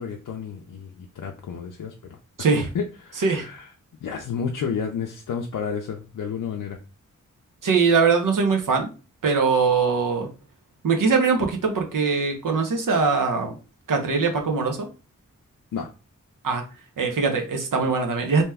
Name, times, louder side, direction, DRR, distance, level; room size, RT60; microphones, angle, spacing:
voice 1, 0.0-2.2 2.7-3.7 4.0-6.8 15.7-15.9, left 6 dB, 75° left, 2 dB, 0.5 m, -31 dB
voice 2, 2.4-2.7 3.2-3.5 7.6-8.9 9.2-10.3 10.8-13.6 13.9-14.9 16.4-16.6 17.0-18.4, right 4 dB, 75° right, 3 dB, 0.7 m, -22 dB
2.8 x 2.2 x 3.3 m, 0.32 s
cardioid pair, 50°, 32 cm